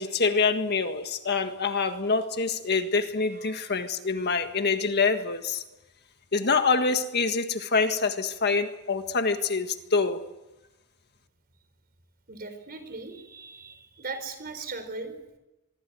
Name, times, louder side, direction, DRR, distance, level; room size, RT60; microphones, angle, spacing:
voice 1, 0.0-5.6 6.3-10.2, left 4 dB, 50° left, 1.7 m, -26 dB
voice 2, 12.3-15.1, right 3 dB, 45° right, 4.8 m, -39 dB
25.0 x 23.0 x 7.8 m
head